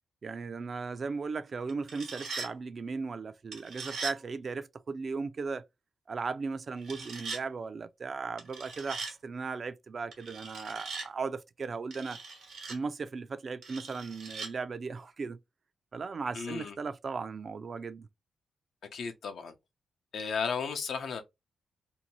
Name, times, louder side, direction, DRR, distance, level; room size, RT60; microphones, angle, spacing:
voice 1, 0.2-5.7 6.1-12.2 12.7-15.4 15.9-18.1, right 4 dB, 55° right, 0.4 m, -37 dB
sound 1, 1.7-2.5 3.5-4.2 6.8-7.4 8.4-9.1 10.1-11.1 11.9-12.8 13.6-14.5, right 4 dB, 85° right, 1.0 m, -40 dB
voice 2, 16.3-16.7 18.9-19.5 20.1-21.2, left 5 dB, 80° left, 0.5 m, -34 dB
2.7 x 2.2 x 2.9 m
cardioid pair, 60°, 0 cm